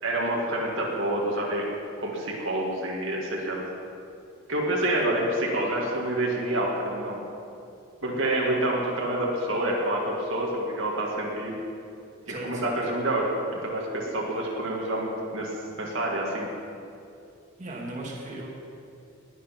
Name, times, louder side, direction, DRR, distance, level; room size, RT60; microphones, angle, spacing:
voice 1, 0.0-1.6 2.0-3.6 4.5-7.2 8.0-11.6 12.3-16.5, right 1 dB, 60° right, -3 dB, 2.1 m, -28 dB
voice 2, 12.3-12.8 17.6-18.5, right 1 dB, 35° right, -3 dB, 2.2 m, -37 dB
20.0 x 8.2 x 6.0 m, 2.6 s
head